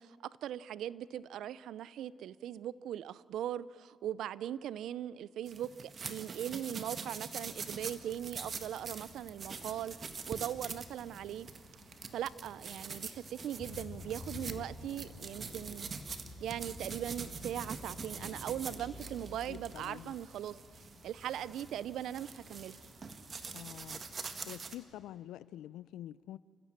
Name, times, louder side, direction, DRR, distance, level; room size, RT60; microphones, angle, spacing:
voice 1, 0.0-9.9 10.3-11.5 12.1-15.9 16.4-20.6 21.0-22.8, right 11 dB, 80° right, 0.6 m, -40 dB
sound 1, 5.5-24.8, right 5 dB, 40° right, 1.7 m, -45 dB
sound 2, 7.4-24.2, left 3 dB, 50° left, 5.7 m, -53 dB
sound 3, 14.0-14.3 14.6-19.6, right 2 dB, 20° right, 6.6 m, -55 dB
voice 2, 19.5-20.1 23.5-24.0 24.5-26.4, left 13 dB, 85° left, 0.5 m, -47 dB
29.5 x 15.5 x 7.4 m
cardioid pair, 90°, 0 cm